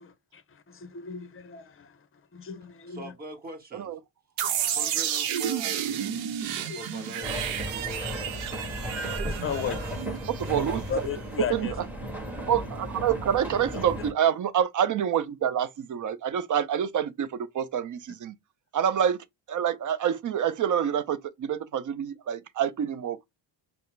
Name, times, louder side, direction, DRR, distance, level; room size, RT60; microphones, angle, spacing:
voice 1, 0.0-2.1 2.3-3.1 4.4-4.9 6.7-6.8 8.6-9.0 9.2-9.9 10.9-11.7 13.7-13.8, left 7 dB, 30° left, 0.7 m, -36 dB
voice 2, 2.9-3.9 4.4-4.5 4.7-6.2 6.7-8.3, right 1 dB, 20° right, 1.4 m, -42 dB
sound 1, 4.4-11.2, right 9 dB, 85° right, 0.8 m, -31 dB
sound 2, 7.2-14.1, equal, 5° right, 1.4 m, -35 dB
voice 3, 10.4-11.1 11.5-11.7 12.5-18.4 18.7-19.2 19.5-23.2, right 9 dB, 40° right, 0.6 m, -27 dB
5.4 x 2.1 x 3.3 m
cardioid pair, 105°, 45 cm